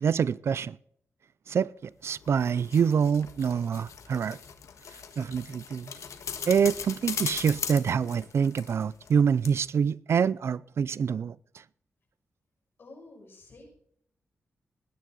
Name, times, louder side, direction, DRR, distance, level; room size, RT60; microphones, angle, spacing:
voice 1, 0.0-0.8 1.5-4.4 5.2-5.9 6.5-11.6, right 7 dB, 60° right, 0.4 m, -26 dB
sound 1, 2.2-9.2 9.4-9.5, left 7 dB, 85° left, 1.5 m, -39 dB
voice 2, 12.8-13.7, left 2 dB, 50° left, 6.4 m, -50 dB
19.5 x 10.0 x 3.9 m
wide cardioid pair, 165°, 5 cm